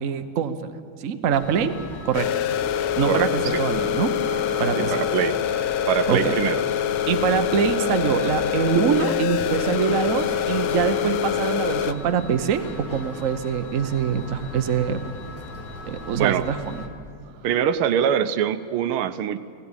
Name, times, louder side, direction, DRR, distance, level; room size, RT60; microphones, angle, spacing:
voice 1, 0.0-0.7 1.0-2.3 2.9-4.1 4.6-5.0 6.1-6.3 7.1-15.0 15.9-16.8, right 7 dB, 50° right, 8 dB, 1.0 m, -24 dB
sound 1, 1.3-16.9, left 2 dB, 45° left, 2.1 m, -39 dB
sound 2, 2.1-11.9, left 9 dB, 90° left, 1.6 m, -25 dB
voice 2, 3.1-3.6 4.8-5.3 5.9-6.6 16.1-16.4 17.4-19.4, right 9 dB, 80° right, 12 dB, 1.6 m, -23 dB
sound 3, 4.0-11.4, equal, 5° left, 1.7 m, -40 dB
19.0 x 16.5 x 8.9 m, 2.3 s
omnidirectional pair, 2.4 m